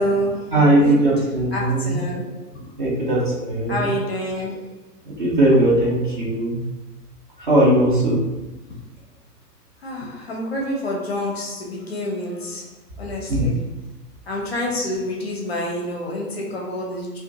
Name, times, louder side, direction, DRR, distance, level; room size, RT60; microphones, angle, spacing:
voice 1, 0.0-3.1 3.7-4.9 9.8-13.7 14.3-17.2, equal, 40° left, -1 dB, 0.5 m, -28 dB
voice 2, 0.5-2.0 2.8-3.8 5.1-6.6 7.4-8.2 13.3-13.5, right 1 dB, 35° right, -5 dB, 0.5 m, -18 dB
2.4 x 2.3 x 2.6 m, 1.1 s
figure-of-eight pair, 115°, 49 cm